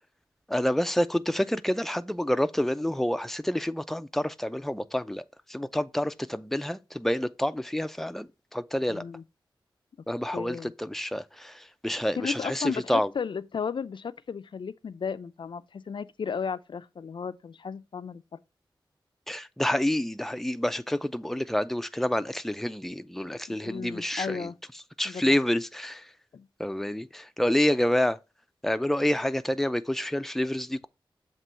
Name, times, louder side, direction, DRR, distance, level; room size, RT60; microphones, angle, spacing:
voice 1, 0.5-5.2 5.5-9.0 10.1-13.1 19.3-24.5 25.0-26.1 26.6-28.2 28.6-30.9, left 1 dB, 5° left, 0.5 m, -28 dB
voice 2, 8.9-9.2 10.3-10.7 12.2-18.2 23.5-24.5 25.0-25.4 26.3-26.5, left 6 dB, 65° left, 0.5 m, -34 dB
7.5 x 3.0 x 5.6 m
wide cardioid pair, 75°, 9 cm